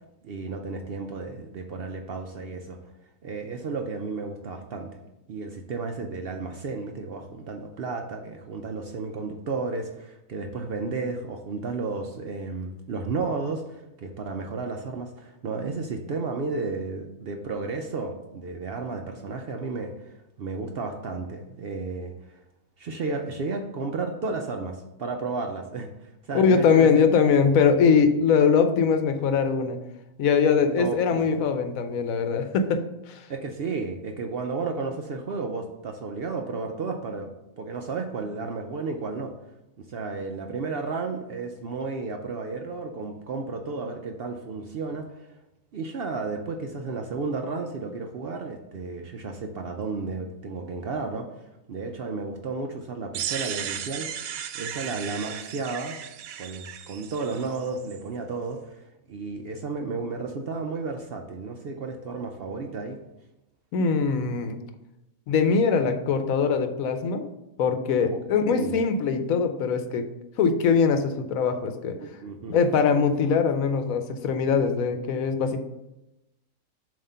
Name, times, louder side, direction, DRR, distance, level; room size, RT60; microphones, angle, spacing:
voice 1, 0.2-2.8 3.2-5.0 5.3-22.3 22.8-27.1 30.7-31.2 33.3-39.3 39.8-45.3 45.7-51.3 51.7-54.1 54.5-56.0 56.4-63.0 68.1-68.2 68.5-68.8 72.0-72.6, right 4 dB, 60° right, 4 dB, 0.6 m, -33 dB
voice 2, 26.3-29.8 30.2-33.2 63.7-64.6 65.3-67.3 67.6-70.1 70.4-72.0 72.5-75.6, left 5 dB, 80° left, 8 dB, 1.1 m, -22 dB
sound 1, 53.1-58.0, right 9 dB, 90° right, 1.0 m, -35 dB
7.3 x 2.9 x 5.5 m, 0.93 s
omnidirectional pair, 1.4 m